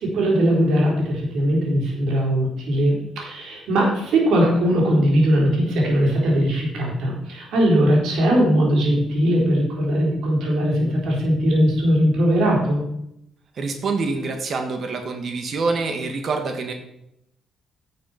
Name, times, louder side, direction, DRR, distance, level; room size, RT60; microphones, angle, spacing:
voice 1, 0.0-12.9, equal, 75° right, -2 dB, 4.1 m, -20 dB
voice 2, 13.6-16.7, right 3 dB, 55° right, 5 dB, 1.6 m, -26 dB
10.5 x 6.7 x 5.8 m, 0.80 s
cardioid pair, 90°, 0 cm